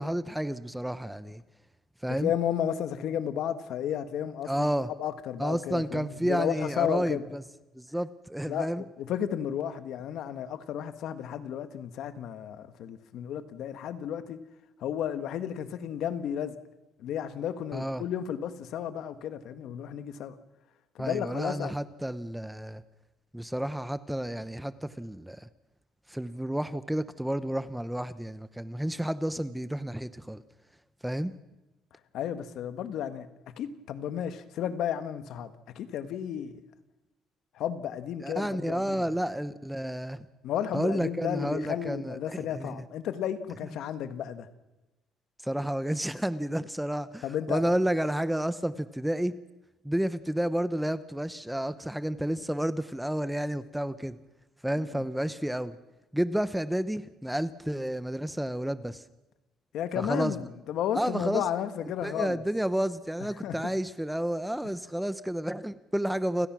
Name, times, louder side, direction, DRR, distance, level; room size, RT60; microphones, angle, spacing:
voice 1, 0.0-1.4 2.0-2.3 4.5-4.9 5.4-7.4 7.7-8.8 17.7-18.0 21.0-22.8 23.3-25.5 26.1-30.4 31.0-31.3 38.2-40.3 40.7-42.8 45.4-49.3 49.8-54.2 54.6-55.8 56.1-59.0 60.0-60.4 60.9-61.4 62.0-66.5, right 1 dB, 5° right, 14 dB, 0.8 m, -31 dB
voice 2, 2.1-4.7 5.0-7.3 8.5-14.4 14.8-16.6 17.0-20.4 21.0-21.7 32.1-36.5 37.5-39.0 40.4-44.5 47.2-47.6 54.9-55.0 59.7-62.4 63.4-63.7, left 9 dB, 70° left, 10 dB, 1.6 m, -33 dB
29.5 x 16.5 x 6.2 m, 1.0 s
cardioid pair, 110°, 0 cm